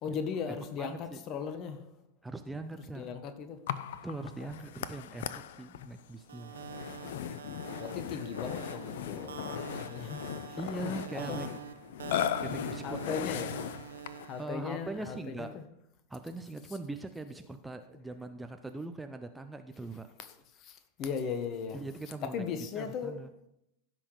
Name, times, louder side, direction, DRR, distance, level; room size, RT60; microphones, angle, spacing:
voice 1, 0.0-2.0 2.7-3.7 4.4-4.5 7.7-11.4 12.8-13.8 14.2-15.7 20.2-20.3 20.5-21.8 22.2-23.3, left 6 dB, 35° left, 1.3 m, -38 dB
voice 2, 0.8-1.2 2.2-3.2 4.0-6.6 10.6-11.5 12.4-13.1 14.4-15.6 16.1-20.1 21.7-22.4 22.8-23.3, right 2 dB, 5° right, 0.7 m, -41 dB
Burping eructation, 3.7-14.4, left 10 dB, 55° left, 0.6 m, -38 dB
sound 1, 6.3-14.4, right 9 dB, 65° right, 0.6 m, -45 dB
15.5 x 6.1 x 4.8 m
figure-of-eight pair, 90°, 0 cm